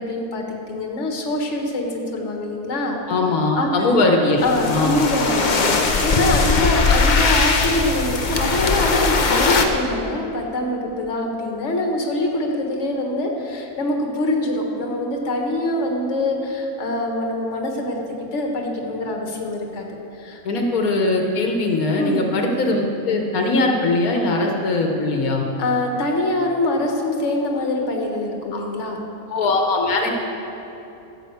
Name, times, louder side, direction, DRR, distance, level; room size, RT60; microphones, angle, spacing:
voice 1, 0.0-3.0 3.6-3.7 4.4-18.0 18.3-19.9 20.2-20.7 22.0-22.3 25.6-29.0, left 1 dB, 55° left, 1 dB, 1.7 m, -24 dB
voice 2, 3.1-5.0 20.4-25.4 28.5-28.6 29.3-30.1, left 2 dB, 90° left, 2 dB, 1.5 m, -20 dB
sound 1, 4.4-9.6, left 4 dB, 40° left, 0.8 m, -20 dB
13.0 x 6.1 x 7.9 m, 3.0 s
omnidirectional pair, 1.5 m